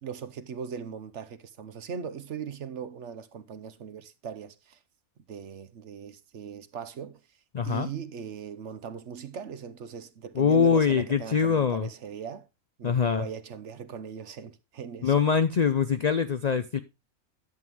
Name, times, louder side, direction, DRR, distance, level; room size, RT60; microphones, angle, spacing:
voice 1, 0.0-4.8 5.3-7.2 7.6-12.5 12.8-15.2, right 7 dB, 60° right, 1.1 m, -39 dB
voice 2, 7.5-7.9 10.4-11.9 12.8-13.3 15.0-16.8, left 6 dB, 75° left, 0.3 m, -23 dB
11.0 x 7.8 x 3.6 m
omnidirectional pair, 1.5 m